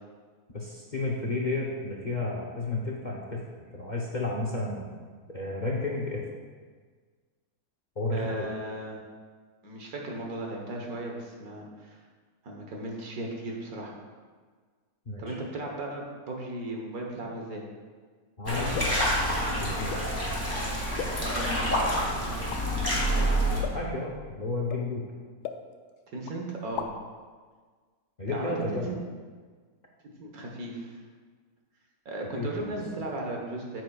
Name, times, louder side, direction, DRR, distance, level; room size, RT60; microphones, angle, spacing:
voice 1, 0.5-3.4 3.7-4.9 5.3-6.2 8.0-8.5 15.1-15.4 18.4-18.9 19.6-20.0 23.2-25.1 28.2-28.9 32.3-32.8, left 2 dB, 35° left, -2 dB, 0.8 m, -32 dB
voice 2, 8.1-9.0 9.6-12.0 12.4-13.9 15.2-17.6 21.2-21.8 23.0-23.4 26.1-26.9 28.3-29.0 30.0-31.0 32.0-33.8, right 1 dB, 70° right, 0 dB, 1.6 m, -36 dB
sound 1, 18.5-23.6, equal, 10° left, 2.1 m, -27 dB
sound 2, 18.7-19.1 19.9-20.1 21.0-21.5 21.9-22.1 22.5-22.6 23.6-23.9 24.7-24.9 25.4-26.0 26.3-26.4 26.6-27.1, left 8 dB, 85° left, 1.1 m, -37 dB
9.3 x 7.8 x 2.3 m, 1.5 s
omnidirectional pair, 1.7 m